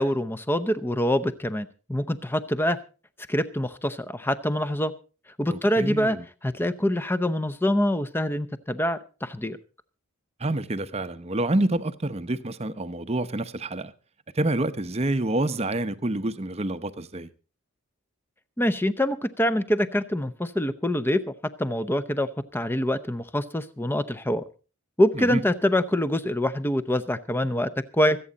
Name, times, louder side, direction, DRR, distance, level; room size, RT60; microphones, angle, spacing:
voice 1, 0.0-2.8 3.3-4.9 5.4-6.2 6.4-9.6 18.6-21.2 21.6-24.4 25.0-28.2, left 1 dB, 10° left, 0.7 m, -25 dB
voice 2, 5.5-6.2 10.4-13.9 14.3-17.3 25.1-25.4, right 2 dB, 30° right, 0.7 m, -27 dB
25.5 x 8.6 x 4.0 m
head